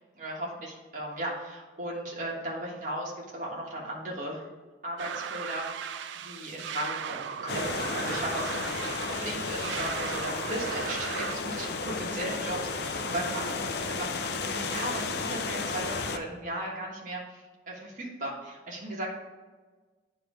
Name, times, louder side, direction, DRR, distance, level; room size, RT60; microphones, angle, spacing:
voice 1, 0.1-4.4 4.8-19.2, right 1 dB, 40° right, -3 dB, 1.4 m, -36 dB
sound 1, 5.0-11.4, right 7 dB, 70° right, 0.4 m, -37 dB
sound 2, 7.5-16.2, left 4 dB, 55° left, 0.5 m, -33 dB
9.3 x 3.1 x 5.0 m, 1.3 s
head